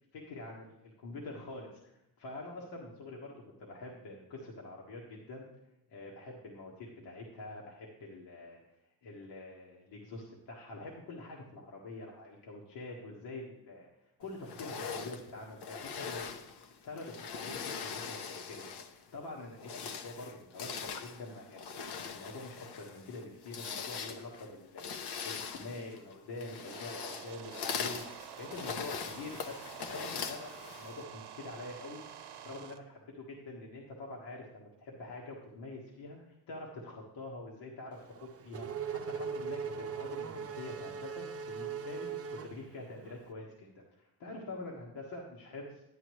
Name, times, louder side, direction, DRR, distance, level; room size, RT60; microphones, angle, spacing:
voice 1, 0.1-0.7 1.0-3.3 3.6-5.5 5.9-8.8 9.0-13.9 14.2-16.2 16.8-21.7 22.1-32.0 32.4-45.8, left 2 dB, 85° left, -3 dB, 1.5 m, -46 dB
sound 1, 14.4-19.0 19.5-31.0, left 6 dB, 70° left, 0.9 m, -41 dB
sound 2, 26.3-32.8, right 8 dB, 80° right, 0.8 m, -48 dB
Race car auto racing / Accelerating revving vroom, 38.0-43.2, right 6 dB, 35° right, 0.6 m, -40 dB
10.0 x 10.0 x 3.1 m, 0.87 s
cardioid pair, 80°, 41 cm